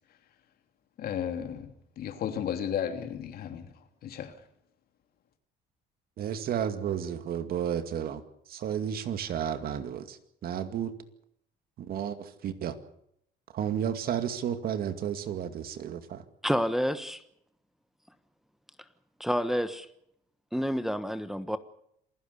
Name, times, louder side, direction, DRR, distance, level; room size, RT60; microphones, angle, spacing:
voice 1, 1.0-4.4, left 9 dB, 65° left, 2.9 m, -34 dB
voice 2, 6.2-8.2 8.5-10.9 11.8-12.8 13.5-16.2, right 9 dB, 60° right, 2.3 m, -32 dB
voice 3, 16.4-17.2 19.2-19.9 20.5-21.6, equal, ahead, 1.3 m, -29 dB
27.5 x 16.0 x 6.9 m
cardioid pair, 110°, 17 cm